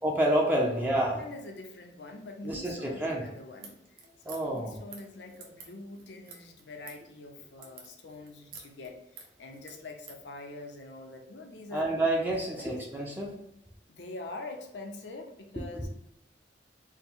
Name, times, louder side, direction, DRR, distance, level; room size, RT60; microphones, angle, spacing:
voice 1, 0.0-1.2 2.4-3.2 4.2-4.8 11.7-13.4 15.8-15.9, right 1 dB, 10° right, -2 dB, 0.6 m, -28 dB
voice 2, 0.6-3.8 4.2-11.9 12.6-12.7 13.9-15.9, left 2 dB, 70° left, 3 dB, 0.7 m, -44 dB
sound 1, 3.6-10.2, right 5 dB, 55° right, 0.9 m, -50 dB
4.6 x 2.2 x 3.6 m, 0.81 s
head